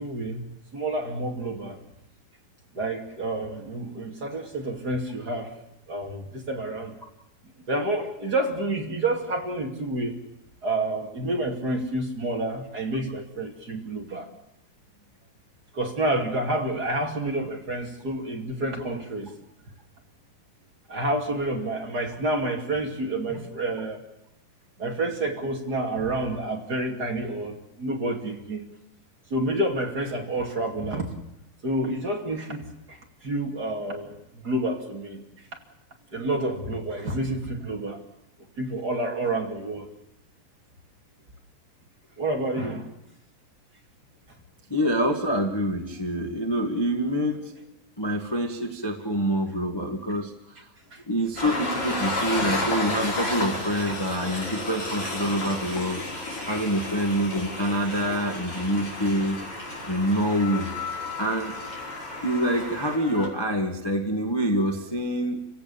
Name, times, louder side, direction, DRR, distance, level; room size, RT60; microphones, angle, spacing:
voice 1, 0.0-1.8 2.7-5.5 5.9-6.9 7.7-10.2 10.6-14.3 15.7-19.4 20.9-24.0 24.8-28.6 29.3-31.2 31.6-34.2 34.4-35.2 36.1-38.0 38.6-39.9 42.2-42.9 50.9-51.0 52.0-52.1 53.2-53.3 53.8-53.9 54.5-54.6 55.0-55.1 56.5-56.6, right 1 dB, 35° right, 1 dB, 2.8 m, -29 dB
voice 2, 44.7-47.5 48.0-50.3 51.1-56.0 56.5-59.4 59.8-60.7 60.9-61.5 62.2-65.5, equal, 10° left, 2 dB, 1.3 m, -26 dB
Train, 51.4-63.3, left 2 dB, 45° left, 6.0 m, -32 dB
29.0 x 17.0 x 7.1 m, 0.87 s
omnidirectional pair, 3.5 m